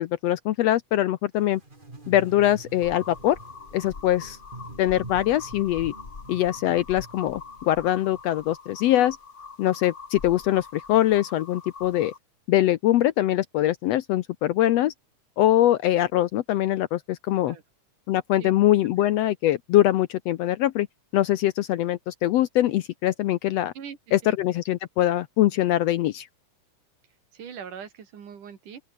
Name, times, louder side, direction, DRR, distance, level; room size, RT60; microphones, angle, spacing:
voice 1, 0.0-1.6 2.1-3.4 3.7-4.4 4.8-5.9 6.3-9.2 9.6-12.1 12.5-14.9 15.4-17.6 18.1-20.9 21.1-23.7 24.1-26.3, left 13 dB, 75° left, 1.6 m, -23 dB
sound 1, 1.4-8.2, right 2 dB, 15° right, 3.0 m, -46 dB
sound 2, 2.8-12.2, left 5 dB, 30° left, 1.7 m, -43 dB
voice 2, 27.3-28.8, right 7 dB, 85° right, 4.4 m, -41 dB
open air
omnidirectional pair, 3.6 m